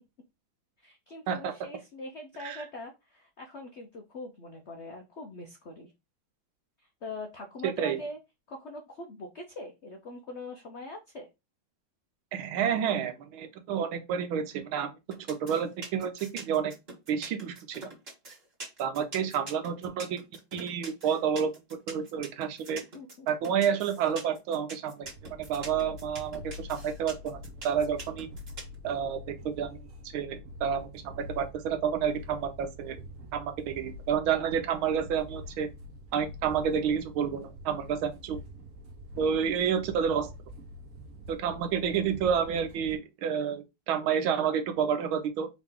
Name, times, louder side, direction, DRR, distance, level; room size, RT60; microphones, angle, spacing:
voice 1, 0.8-5.9 6.8-8.2 8.5-11.3 22.9-23.3 39.2-39.3, left 2 dB, 80° left, 0.6 m, -43 dB
voice 2, 7.6-8.0 12.3-15.0 15.3-16.7 17.1-17.9 18.8-20.2 20.5-21.5 21.9-22.8 23.3-28.3 28.8-29.2 29.4-29.8 30.1-33.0 33.3-35.7 36.1-38.4 39.2-40.3 41.3-45.5, right 7 dB, 80° right, 1.6 m, -29 dB
sound 1, 15.1-28.8, right 3 dB, 30° right, 2.0 m, -43 dB
sound 2, 25.0-42.9, left 1 dB, 55° right, 1.0 m, -45 dB
4.8 x 3.0 x 3.6 m
omnidirectional pair, 2.2 m